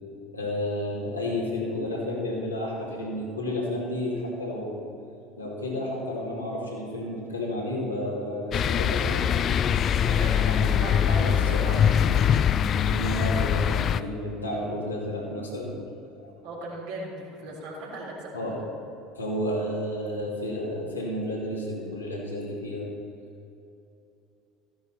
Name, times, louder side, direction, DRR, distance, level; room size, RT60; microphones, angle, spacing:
voice 1, 0.3-4.9 5.4-9.4 10.4-12.1 12.6-15.8 16.2-16.3 18.3-18.6 19.1-22.9, left 1 dB, 90° left, -5 dB, 2.6 m, -31 dB
sound 1, 8.5-14.0, left 8 dB, 40° left, 0.4 m, -23 dB
sound 2, 8.7-13.1, right 1 dB, 70° left, 1.8 m, -47 dB
voice 2, 9.9-12.3 14.5-14.6 16.4-18.6, right 2 dB, 65° right, -4 dB, 3.4 m, -38 dB
14.5 x 10.5 x 4.4 m, 2.8 s
figure-of-eight pair, 65°, 0 cm